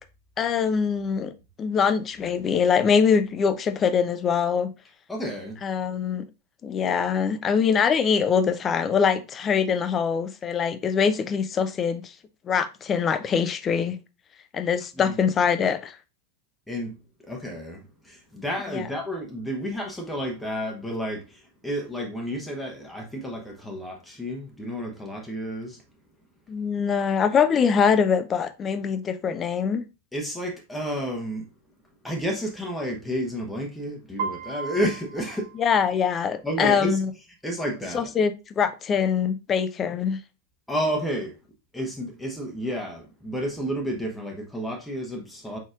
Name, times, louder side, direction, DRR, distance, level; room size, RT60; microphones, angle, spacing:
voice 1, 0.4-4.7 5.6-6.2 6.6-12.1 12.4-14.0 14.5-16.0 18.7-18.9 26.5-29.8 35.6-37.1 37.9-40.2, left 6 dB, 25° left, 0.5 m, -23 dB
voice 2, 5.1-5.6 15.0-15.2 16.7-17.0 17.2-25.8 30.1-31.5 32.0-35.5 36.4-37.0 37.4-38.1 40.7-41.4 41.7-45.6, equal, 5° left, 0.9 m, -31 dB
Piano, 34.2-36.2, right 5 dB, 55° right, 0.6 m, -36 dB
4.9 x 4.1 x 2.4 m
figure-of-eight pair, 90°, 0 cm